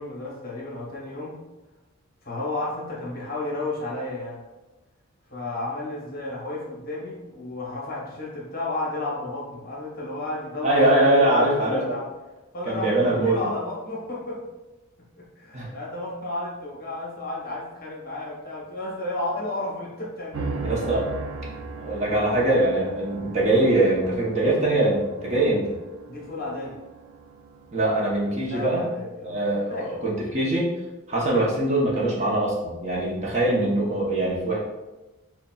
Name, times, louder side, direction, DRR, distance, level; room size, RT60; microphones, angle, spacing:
voice 1, 0.0-1.4 2.2-4.4 5.3-10.9 11.2-12.1 12.5-14.4 15.2-20.7 26.1-26.8 28.5-29.4 29.7-30.1, left 2 dB, 40° left, -4 dB, 1.0 m, -32 dB
voice 2, 10.6-11.8 12.7-13.4 15.5-15.7 20.6-21.0 21.8-25.6 27.7-28.8 29.2-30.7 31.1-34.6, right 1 dB, 30° right, -4 dB, 0.7 m, -22 dB
sound 1, 20.3-28.7, right 3 dB, 70° right, 0.5 m, -38 dB
6.5 x 2.2 x 2.3 m, 1.1 s
head